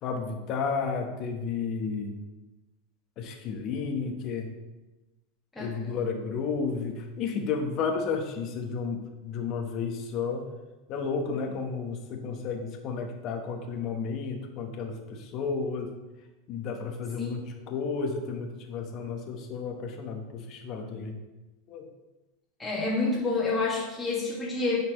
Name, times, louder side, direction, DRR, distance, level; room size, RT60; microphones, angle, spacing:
voice 1, 0.0-2.2 3.2-4.5 5.6-10.4 10.9-15.9 16.5-21.2 21.7-21.9, left 5 dB, 45° left, 3 dB, 1.1 m, -32 dB
voice 2, 22.6-24.8, left 3 dB, 10° left, -7 dB, 1.7 m, -28 dB
9.8 x 4.3 x 3.1 m, 1.1 s
supercardioid pair, 120°, 0 cm